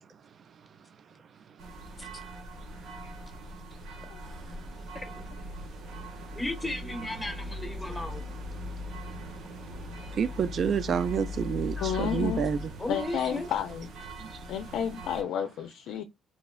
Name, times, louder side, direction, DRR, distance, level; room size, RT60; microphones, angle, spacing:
voice 1, 1.5-1.8 2.7-2.8 4.3-4.9 8.7-8.8 9.8-12.7 14.2-14.5, right 7 dB, 55° right, 0.4 m, -30 dB
sound 1, 1.6-15.2, left 1 dB, 85° right, 1.0 m, -40 dB
voice 2, 4.1-4.5 11.8-12.5 12.9-13.9 14.5-16.0, left 8 dB, 85° left, 0.4 m, -31 dB
voice 3, 6.3-8.3 11.8-11.9 12.8-13.5, left 1 dB, 20° left, 1.0 m, -35 dB
3.7 x 2.0 x 2.2 m
cardioid pair, 90°, 0 cm